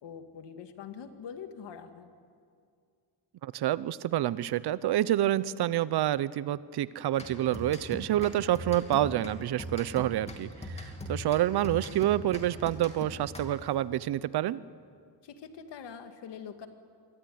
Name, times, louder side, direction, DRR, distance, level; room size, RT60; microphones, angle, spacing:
voice 1, 0.0-2.1 15.2-16.7, left 7 dB, 70° left, 7 dB, 2.2 m, -44 dB
voice 2, 3.4-10.5 10.7-14.6, right 13 dB, 65° right, 18 dB, 0.8 m, -28 dB
sound 1, 7.1-13.8, left 1 dB, 15° left, 2.7 m, -41 dB
26.5 x 23.5 x 9.4 m, 2.2 s
wide cardioid pair, 180°, 42 cm